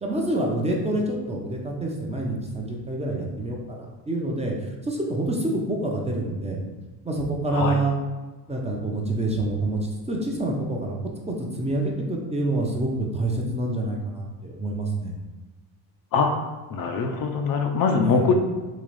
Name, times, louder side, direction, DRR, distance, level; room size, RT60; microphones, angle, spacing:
voice 1, 0.0-6.6 7.0-7.9 8.5-11.0 11.3-15.1 18.0-18.3, right 2 dB, 15° right, -1 dB, 0.6 m, -27 dB
voice 2, 16.7-18.3, left 5 dB, 50° left, 4 dB, 0.6 m, -22 dB
3.9 x 2.4 x 3.2 m, 1.2 s
supercardioid pair, 85°, 43 cm